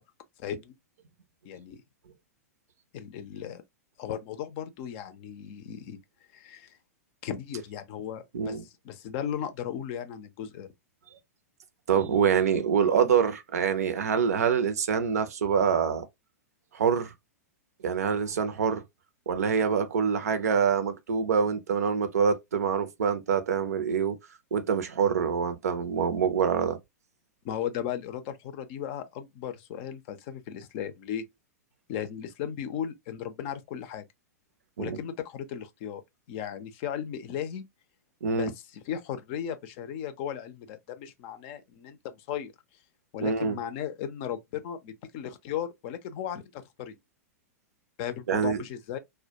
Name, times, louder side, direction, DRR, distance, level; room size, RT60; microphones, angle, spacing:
voice 1, 0.4-0.7 1.4-1.8 2.9-3.6 4.0-6.0 6.3-6.8 7.2-10.7 26.2-26.3 27.4-31.2 31.9-34.0 34.8-36.0 36.3-37.7 38.2-42.5 43.1-47.0 48.0-49.0, left 9 dB, 45° left, 0.5 m, -36 dB
voice 2, 8.3-8.6 11.9-16.0 16.7-17.1 17.8-18.8 19.3-24.2 24.5-26.8 34.8-35.0 38.2-38.5 43.2-43.6 48.3-48.6, right 7 dB, 70° right, 0.5 m, -25 dB
2.1 x 2.1 x 2.7 m
hypercardioid pair, 105°, 9 cm